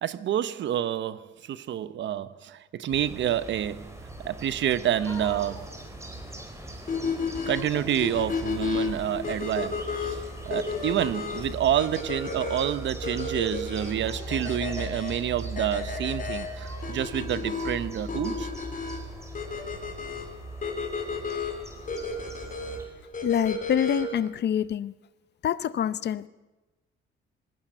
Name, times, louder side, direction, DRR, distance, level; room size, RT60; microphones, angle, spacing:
voice 1, 0.0-3.9 4.2-5.7 7.5-18.5, right 10 dB, 70° right, 0.9 m, -28 dB
sound 1, 2.9-22.9, right 1 dB, 15° right, 4.3 m, -40 dB
sound 2, 4.4-8.8 9.2-15.9 16.3-17.9 18.4-18.5 18.9-19.0 19.4-20.5, left 2 dB, 15° left, 3.1 m, -48 dB
sound 3, 6.9-24.3, left 4 dB, 40° left, 4.5 m, -33 dB
voice 2, 23.2-24.9 25.4-26.3, left 9 dB, 60° left, 0.8 m, -26 dB
20.0 x 16.0 x 9.1 m
cardioid pair, 90°, 20 cm